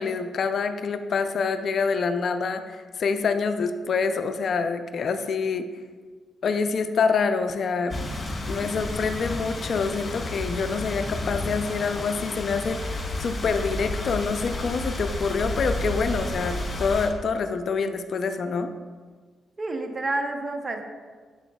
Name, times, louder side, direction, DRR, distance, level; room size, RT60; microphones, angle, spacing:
voice 1, 0.0-5.7 6.4-8.0 8.5-18.7, left 5 dB, 60° left, 9 dB, 0.4 m, -26 dB
sound 1, 7.9-17.1, left 1 dB, 35° left, 1.8 m, -31 dB
voice 2, 19.6-20.8, right 2 dB, 40° right, 5 dB, 0.8 m, -29 dB
7.9 x 6.0 x 2.3 m, 1.5 s
supercardioid pair, 55°, 0 cm